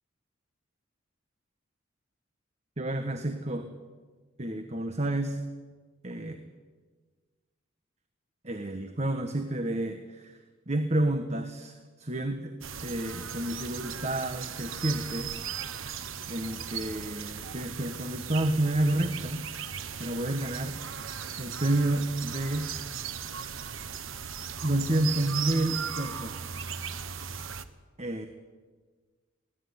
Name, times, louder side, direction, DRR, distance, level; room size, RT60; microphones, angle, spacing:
voice 1, 2.8-3.7 4.4-5.4 6.0-6.4 8.4-10.3 10.7-12.5 12.8-15.3 16.3-19.5 20.0-20.8 21.4-22.7 24.6-26.7 28.0-28.3, right 1 dB, 35° right, 7 dB, 1.3 m, -30 dB
sound 1, 12.6-27.6, right 7 dB, 80° right, 1.2 m, -37 dB
23.5 x 16.5 x 9.7 m, 1.4 s
head